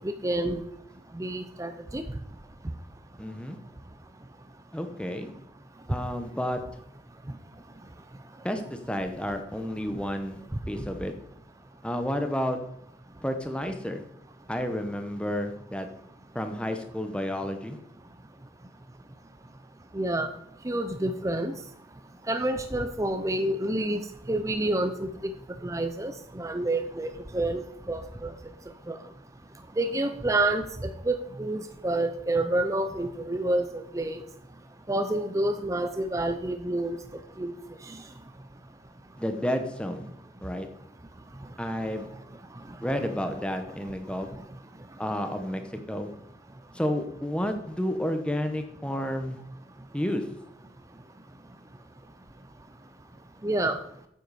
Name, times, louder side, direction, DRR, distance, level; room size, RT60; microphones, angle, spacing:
voice 1, 0.2-0.6 1.2-2.0 19.9-20.3 20.7-21.5 22.3-24.0 24.3-25.1 25.6-28.3 28.9-29.0 29.8-30.6 31.1-33.7 33.9-34.2 34.9-37.0 37.4-37.5 53.4-53.8, right 1 dB, 15° right, 8 dB, 0.5 m, -28 dB
voice 2, 3.2-3.6 4.7-5.3 5.9-6.6 8.4-10.4 10.7-11.1 11.8-12.6 13.2-14.0 14.5-15.9 16.3-17.8 39.2-40.1 40.4-40.7 41.6-42.1 42.8-44.3 45.0-45.6 45.9-46.1 46.7-49.4 49.9-50.2, equal, 5° left, 7 dB, 0.9 m, -30 dB
9.0 x 7.9 x 4.9 m, 0.73 s
head